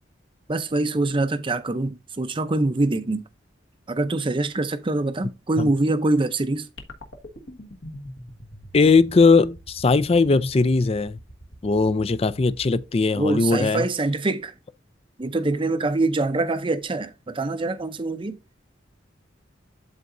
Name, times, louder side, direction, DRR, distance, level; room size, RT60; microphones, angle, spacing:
voice 1, 0.5-3.2 3.9-6.7 13.1-14.5 15.2-18.4, right 2 dB, 25° right, 0.6 m, -24 dB
sound 1, 6.8-13.3, equal, 65° left, 1.5 m, -44 dB
voice 2, 8.7-11.2 11.6-13.9, left 4 dB, 30° left, 0.4 m, -19 dB
12.0 x 4.1 x 2.6 m
head